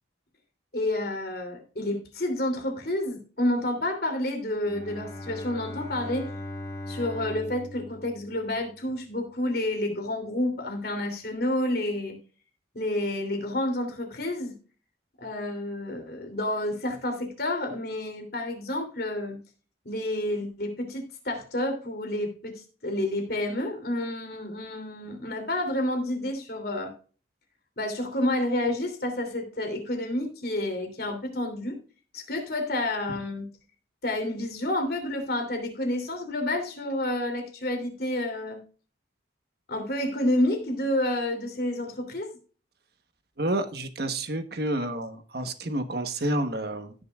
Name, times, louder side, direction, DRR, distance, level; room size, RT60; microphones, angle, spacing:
voice 1, 0.7-6.3 6.9-12.2 12.7-14.5 15.2-19.4 19.8-26.9 27.8-31.8 32.1-33.5 34.0-38.6 39.7-42.3, left 1 dB, 55° left, 4 dB, 3.1 m, -29 dB
Bowed string instrument, 4.6-9.0, left 1 dB, 15° left, 2.0 m, -39 dB
voice 2, 43.4-46.9, right 1 dB, 55° right, 8 dB, 1.2 m, -29 dB
16.5 x 6.7 x 2.4 m, 0.39 s
head